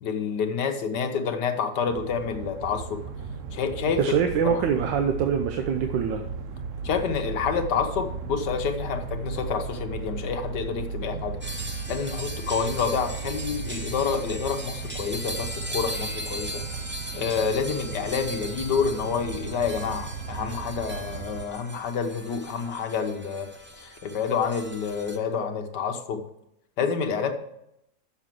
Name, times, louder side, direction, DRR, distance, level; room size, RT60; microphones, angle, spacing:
voice 1, 0.0-3.0 3.5-4.0 4.4-4.6 6.8-11.4 11.9-16.6 17.1-23.5 23.8-26.2 26.8-27.3, left 6 dB, 70° left, 6 dB, 1.6 m, -28 dB
sound 1, 1.9-21.5, right 5 dB, 60° right, 0.9 m, -36 dB
voice 2, 4.0-6.3, right 7 dB, 80° right, 6 dB, 1.4 m, -24 dB
sound 2, 11.4-25.2, equal, 10° right, 0.6 m, -39 dB
7.2 x 6.7 x 7.4 m, 0.79 s
omnidirectional pair, 2.0 m